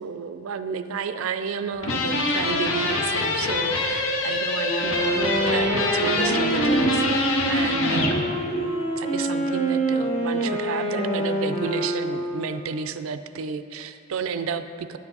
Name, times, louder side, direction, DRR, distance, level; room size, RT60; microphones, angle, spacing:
voice 1, 0.0-8.7 9.0-15.0, right 6 dB, 80° right, 10 dB, 0.4 m, -32 dB
sound 1, 1.8-8.2, left 2 dB, 75° left, 0.9 m, -24 dB
Wind instrument woodwind instrument, 4.6-12.5, right 1 dB, 35° left, 1.1 m, -26 dB
9.7 x 5.8 x 3.9 m, 2.5 s
head